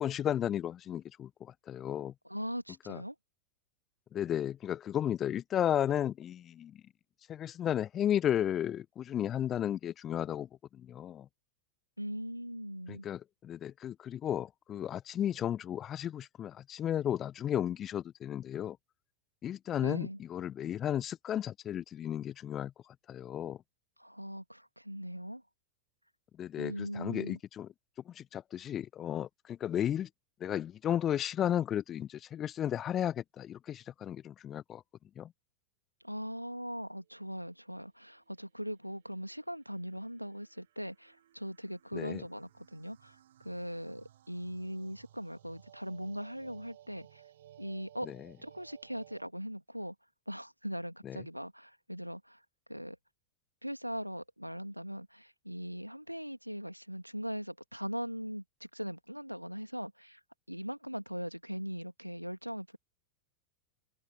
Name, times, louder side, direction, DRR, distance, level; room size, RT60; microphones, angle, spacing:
voice 1, 0.0-2.1 2.9-3.0 4.1-6.8 7.3-11.3 12.9-18.8 19.4-22.7 23.1-23.6 26.4-27.7 28.1-30.1 30.4-34.8 35.2-35.3 41.9-42.2 48.0-48.3 51.0-51.2, left 10 dB, 30° left, 1.0 m, -34 dB
voice 2, 2.2-3.2 12.0-13.1 19.8-20.2 24.0-25.4 26.6-27.4 36.0-47.2 47.6-48.1 48.4-49.9 50.3-52.4 52.7-53.0 53.6-60.2 60.5-62.8, equal, 90° right, 2.3 m, -40 dB
sound 1, 37.8-49.2, right 12 dB, 60° right, 3.4 m, -60 dB
open air
figure-of-eight pair, 90°, 0 cm